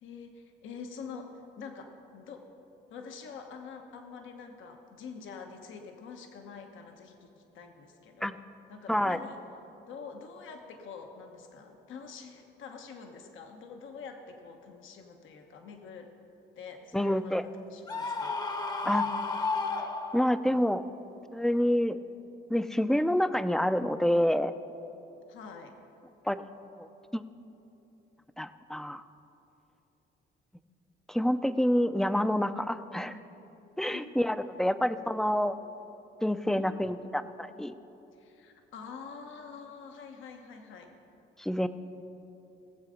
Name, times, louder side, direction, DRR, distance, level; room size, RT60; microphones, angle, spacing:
voice 1, 0.0-2.4 2.9-8.4 8.7-9.4 9.9-16.1 16.6-18.4 18.8-19.1 25.3-25.7 32.9-33.2 33.9-34.8 36.5-36.9 38.1-40.9, left 5 dB, 80° left, 4 dB, 1.1 m, -46 dB
voice 2, 8.9-9.2 16.9-17.4 18.8-19.0 20.1-20.8 21.3-22.0 22.5-24.5 26.3-26.5 26.8-27.2 28.4-29.0 31.1-33.2 33.8-35.5 36.2-37.7 41.4-41.7, equal, ahead, 11 dB, 0.5 m, -27 dB
Screaming, 17.9-20.6, left 4 dB, 20° left, 0.8 m, -32 dB
18.5 x 7.6 x 5.1 m, 3.0 s
cardioid pair, 90°, 20 cm